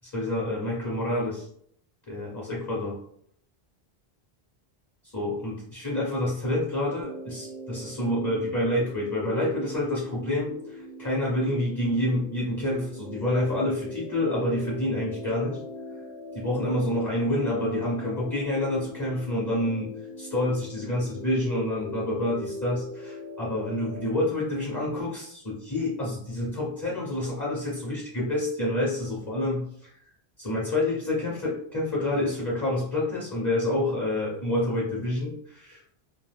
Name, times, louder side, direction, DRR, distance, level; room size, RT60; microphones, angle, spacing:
voice 1, 0.1-1.5 2.1-3.0 5.1-15.6 16.3-19.9 20.2-29.9 30.4-35.9, left 1 dB, 20° left, -5 dB, 0.6 m, -28 dB
sound 1, 7.0-24.1, left 1 dB, 70° left, 0.7 m, -40 dB
2.5 x 2.2 x 3.3 m, 0.65 s
omnidirectional pair, 1.1 m